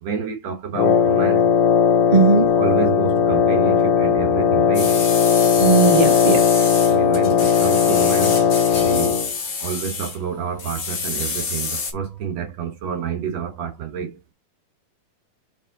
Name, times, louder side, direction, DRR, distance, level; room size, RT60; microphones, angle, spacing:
voice 1, 0.0-1.5 2.6-5.0 6.9-9.3 9.6-14.2, right 7 dB, 60° right, 2.1 m, -29 dB
Wind instrument woodwind instrument, 0.7-9.3, left 7 dB, 90° left, 1.3 m, -17 dB
voice 2, 2.1-2.5 5.6-6.4, right 5 dB, 40° right, 0.6 m, -17 dB
sound 1, 4.7-10.2 10.6-11.9, left 5 dB, 45° left, 3.0 m, -28 dB
6.2 x 5.1 x 3.9 m
omnidirectional pair, 4.1 m